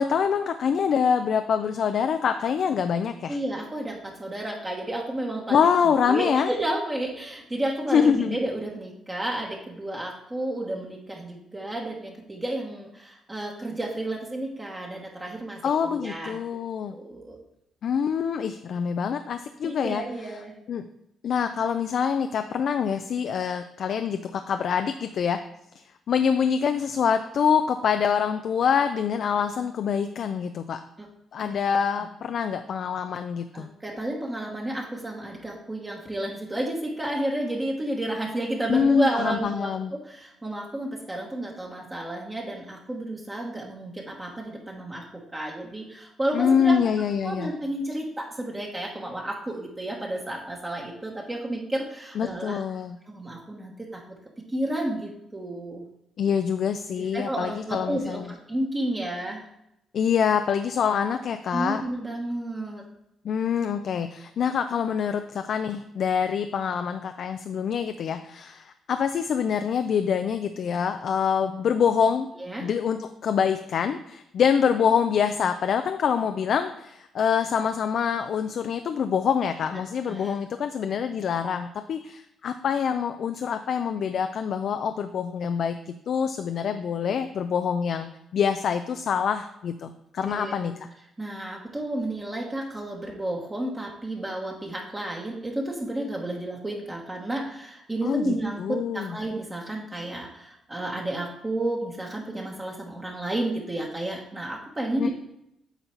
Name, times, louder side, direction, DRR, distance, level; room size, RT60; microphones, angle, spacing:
voice 1, 0.0-3.4 5.5-6.5 7.9-8.4 15.6-16.9 17.8-20.0 20.7-20.8 21.2-25.4 26.1-30.8 31.3-33.7 38.7-39.9 46.3-47.5 52.2-53.0 56.2-58.3 59.9-61.8 63.2-72.3 72.6-85.8 86.1-90.7 98.0-99.1 105.0-105.1, left 7 dB, 60° left, 8 dB, 0.4 m, -25 dB
voice 2, 3.3-5.7 6.1-16.4 16.9-17.4 19.6-20.5 31.0-31.1 31.4-31.5 33.5-45.0 45.3-46.8 47.2-52.6 53.0-54.0 54.5-55.8 57.0-59.4 61.5-62.8 72.4-72.7 79.7-80.3 90.2-90.7 91.2-105.1, right 1 dB, 20° right, -2 dB, 1.2 m, -31 dB
8.1 x 4.0 x 4.4 m, 0.83 s
cardioid pair, 90°, 0 cm